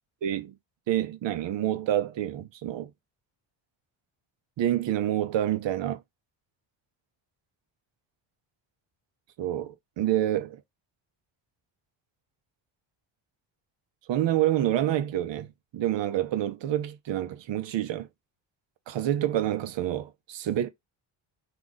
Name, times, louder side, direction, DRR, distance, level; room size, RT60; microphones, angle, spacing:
voice 1, 0.2-0.6 0.9-2.9 4.6-6.0 9.4-10.6 14.1-15.5 15.7-18.1 18.9-20.7, right 12 dB, 60° right, 0.8 m, -27 dB
3.0 x 2.4 x 3.7 m
supercardioid pair, 75°, 49 cm